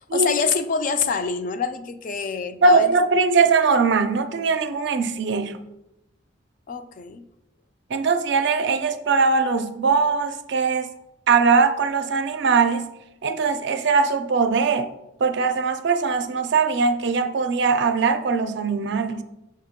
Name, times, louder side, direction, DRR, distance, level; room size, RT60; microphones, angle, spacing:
voice 1, 0.1-2.9 6.7-7.2, left 5 dB, 40° left, 0.3 m, -25 dB
voice 2, 2.6-5.6 7.9-10.9 11.3-12.8 13.2-14.9 15.2-19.2, right 4 dB, 60° right, 0.4 m, -20 dB
6.6 x 2.9 x 5.0 m
head